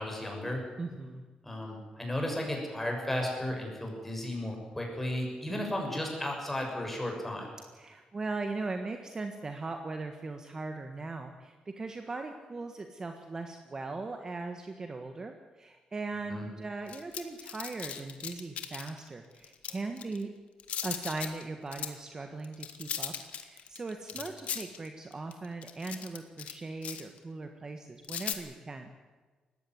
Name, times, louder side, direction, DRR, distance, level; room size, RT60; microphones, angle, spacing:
voice 1, 0.0-0.6 1.4-7.5 16.3-16.4, left 1 dB, 10° left, 0 dB, 6.8 m, -34 dB
voice 2, 0.8-1.2 5.5-5.6 7.7-20.3 20.8-23.1 23.4-28.9, right 3 dB, 25° right, 6 dB, 1.5 m, -39 dB
sound 1, 16.9-19.0 19.4-20.2 20.6-21.4 21.7-21.9 22.4-26.5 26.8-27.2 28.0-28.3, left 9 dB, 75° left, 2.0 m, -38 dB
20.0 x 16.0 x 9.5 m, 1.4 s
cardioid pair, 130°, 2 cm